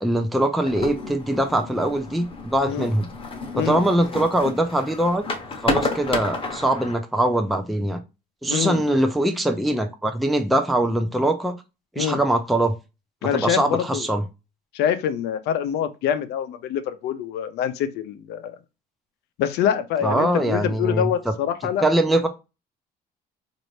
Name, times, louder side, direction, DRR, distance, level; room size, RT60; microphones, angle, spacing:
voice 1, 0.0-3.1 3.5-5.2 5.6-8.0 8.4-11.6 12.0-12.7 13.3-14.2 20.0-21.1 21.8-22.3, right 1 dB, ahead, 0.4 m, -22 dB
sound 1, 0.7-7.0, left 3 dB, 30° left, 0.8 m, -31 dB
voice 2, 8.5-8.8 12.0-12.2 13.2-14.1 14.7-18.6 19.4-21.9, left 9 dB, 80° left, 0.6 m, -25 dB
4.1 x 2.6 x 3.1 m
cardioid pair, 110°, 17 cm